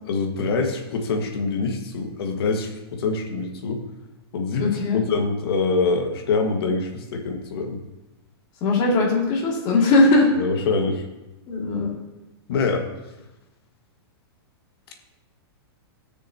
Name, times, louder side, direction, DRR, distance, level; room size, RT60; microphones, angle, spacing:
voice 1, 0.1-3.8 4.3-4.7 4.9-7.8 10.4-11.0 12.5-12.9, left 4 dB, 70° left, 3 dB, 1.7 m, -25 dB
voice 2, 4.6-5.0 8.6-10.3 11.5-11.9, left 2 dB, 35° left, -2 dB, 2.4 m, -19 dB
18.0 x 6.5 x 2.9 m, 1.1 s
supercardioid pair, 155°, 13 cm